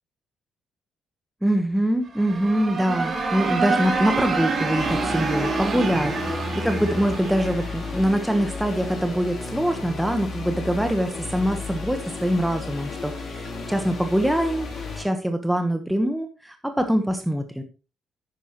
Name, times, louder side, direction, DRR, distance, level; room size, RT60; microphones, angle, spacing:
voice 1, 1.4-6.1 6.6-17.6, equal, 5° right, 6 dB, 1.2 m, -24 dB
sound 1, 2.0-8.8, right 4 dB, 45° right, 3.2 m, -27 dB
sound 2, 4.8-15.0, left 3 dB, 55° left, 5.1 m, -33 dB
9.9 x 9.8 x 3.1 m, 0.31 s
cardioid pair, 90°, 0 cm